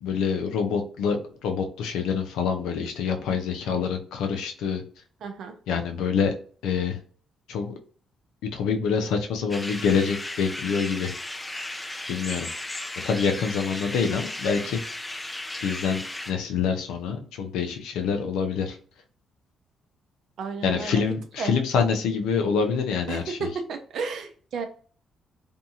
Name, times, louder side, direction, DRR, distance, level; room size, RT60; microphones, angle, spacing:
voice 1, 0.0-1.2 1.4-4.8 5.7-6.3 6.6-7.0 7.5-7.7 8.5-11.1 12.1-12.5 13.0-14.8 15.6-18.8 20.6-23.5, left 6 dB, 90° left, 4 dB, 0.5 m, -26 dB
voice 2, 5.2-5.5 20.4-21.0 21.4-21.5 23.1-24.7, right 5 dB, 70° right, 6 dB, 0.5 m, -32 dB
sound 1, 9.5-16.3, left 1 dB, 15° left, 0.5 m, -35 dB
2.6 x 2.3 x 2.7 m, 0.43 s
cardioid pair, 90°, 0 cm